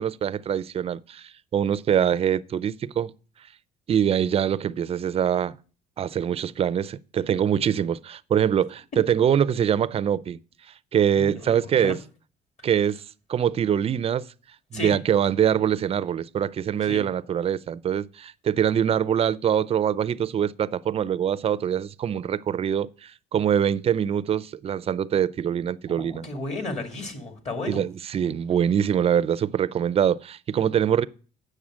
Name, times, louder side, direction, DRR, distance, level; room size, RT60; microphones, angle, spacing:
voice 1, 0.0-3.1 3.9-5.6 6.0-10.4 10.9-12.0 12.6-13.0 13.3-14.3 14.7-26.3 27.7-31.1, right 9 dB, 35° right, 0.4 m, -24 dB
voice 2, 11.2-11.9 14.7-14.9 16.9-17.0 25.9-27.8, left 2 dB, 40° left, 2.4 m, -33 dB
8.6 x 6.6 x 6.3 m
cardioid pair, 110°, 17 cm